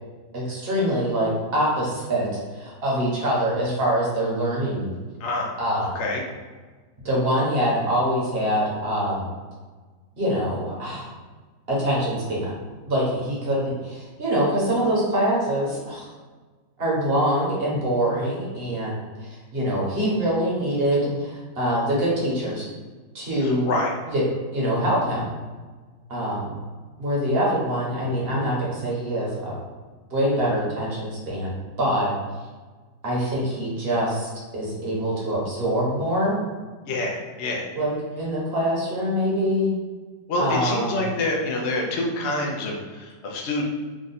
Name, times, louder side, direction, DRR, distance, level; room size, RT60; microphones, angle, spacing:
voice 1, 0.3-2.3 2.5-4.9 5.6-6.0 7.0-9.3 10.2-11.1 11.7-12.5 12.9-16.1 16.8-22.7 23.1-23.7 24.1-24.2 24.5-25.3 26.1-26.5 27.0-29.5 30.1-32.1 33.0-36.4 37.7-39.7 40.4-41.0, equal, 40° right, -5 dB, 1.1 m, -24 dB
voice 2, 5.2-5.5 5.9-6.2 23.4-23.9 36.9-37.7 40.3-43.6, left 2 dB, 75° left, 0 dB, 0.6 m, -27 dB
3.6 x 2.4 x 4.0 m, 1.4 s
omnidirectional pair, 2.0 m